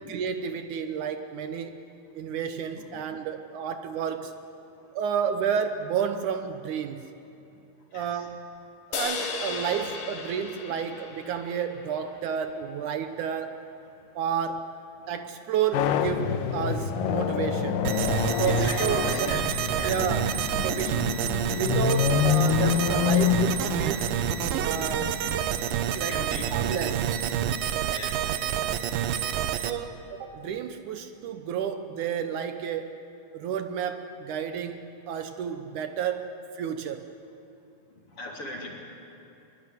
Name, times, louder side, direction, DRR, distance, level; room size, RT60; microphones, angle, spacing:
voice 1, 0.1-1.9 2.1-4.3 4.9-7.1 7.9-8.5 8.9-13.6 14.2-14.8 15.1-17.9 18.4-19.4 19.8-21.0 21.6-24.2 24.6-25.2 26.0-27.1 29.6-33.0 33.3-37.1, right 7 dB, 70° right, 8 dB, 2.3 m, -31 dB
sound 1, 8.9-12.4, left 4 dB, 70° left, 3.6 m, -35 dB
sound 2, 15.7-25.1, left 9 dB, 90° left, 2.7 m, -27 dB
sound 3, 17.9-29.7, right 10 dB, 90° right, 2.7 m, -28 dB
voice 2, 18.3-19.4 19.8-20.0 20.7-20.8 24.8-25.2 26.1-26.5 27.9-28.3 38.2-38.7, left 2 dB, 40° left, -1 dB, 4.1 m, -38 dB
23.5 x 22.0 x 9.3 m, 2.9 s
omnidirectional pair, 3.9 m